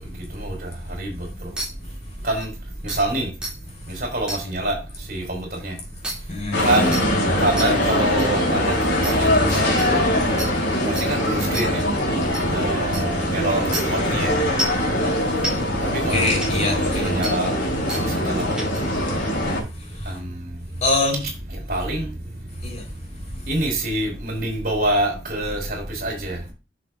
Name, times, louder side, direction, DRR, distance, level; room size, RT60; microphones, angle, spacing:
sound 1, 1.6-1.7 2.4-2.5 2.9-3.0 3.4-3.5 4.3-4.4 6.0-6.1 6.9-7.0 7.6-7.7 8.2-8.3 9.0-9.1 9.8-9.9 10.4-10.5 11.0-11.1 11.5-11.7 12.3-12.4 12.9-13.0 13.7-13.8 14.6-14.8 15.4-15.5 16.4-16.5 17.2-17.3 17.9-18.0 18.6-18.8, right 1 dB, 5° right, 2.5 m, -28 dB
voice 1, 2.8-3.3 4.1-4.8 5.1-5.7 6.6-7.0 7.4-9.4 9.9-10.0 11.1-11.8 12.5-14.3 15.8-16.4 16.8-17.5 17.9-18.6 20.1-20.2 21.7-22.1 23.5-26.4, right 1 dB, 50° right, 3.4 m, -25 dB
voice 2, 6.3-6.7 15.9-17.3 19.7-20.2 20.8-21.3 22.6-22.9, left 2 dB, 35° left, 3.9 m, -25 dB
sound 2, 6.5-19.6, left 1 dB, 75° left, 3.5 m, -22 dB
11.0 x 6.6 x 2.5 m
head